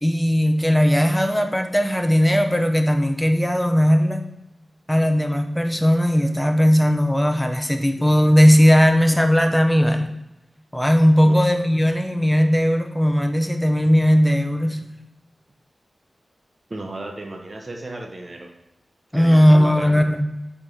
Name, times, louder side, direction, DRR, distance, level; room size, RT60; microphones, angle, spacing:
voice 1, 0.0-4.2 4.9-10.1 10.7-14.8 19.1-20.3, equal, 5° left, 5 dB, 0.8 m, -17 dB
voice 2, 16.7-18.5 19.1-20.0, right 2 dB, 45° right, 2 dB, 0.8 m, -34 dB
4.4 x 4.3 x 4.9 m, 0.92 s
cardioid pair, 50°, 0 cm